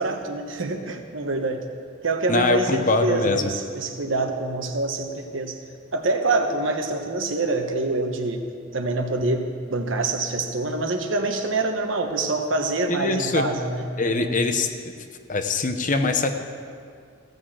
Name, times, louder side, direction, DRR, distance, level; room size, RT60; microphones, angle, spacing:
voice 1, 0.0-1.7 2.0-5.6 5.9-8.4 8.7-14.3, right 2 dB, 80° right, 5 dB, 1.1 m, -26 dB
voice 2, 2.3-3.5 12.9-13.4 14.0-14.9 15.3-16.3, left 3 dB, 40° left, 7 dB, 0.8 m, -23 dB
15.0 x 6.6 x 7.5 m, 2.3 s
head